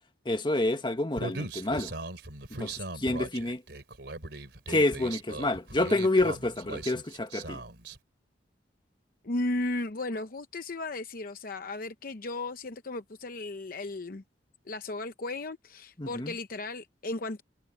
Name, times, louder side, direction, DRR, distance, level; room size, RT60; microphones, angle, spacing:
voice 1, 0.2-1.9 2.6-3.6 4.7-7.6 16.0-16.3, left 2 dB, 25° left, 1.4 m, -28 dB
Human voice, 1.2-8.0, right 2 dB, 70° right, 3.9 m, -39 dB
voice 2, 9.2-14.2 14.7-17.4, left 2 dB, 50° left, 0.8 m, -35 dB
head